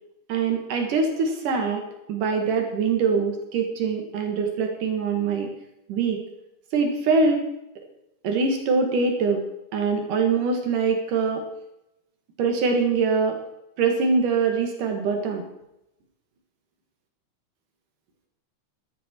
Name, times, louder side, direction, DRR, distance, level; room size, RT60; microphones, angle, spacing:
voice 1, 0.3-1.8 2.1-5.5 5.9-6.2 6.7-7.4 8.2-9.4 9.7-11.4 12.4-13.4 13.8-15.4, right 4 dB, 80° right, 4 dB, 3.4 m, -23 dB
14.5 x 13.0 x 4.5 m, 0.85 s
omnidirectional pair, 3.6 m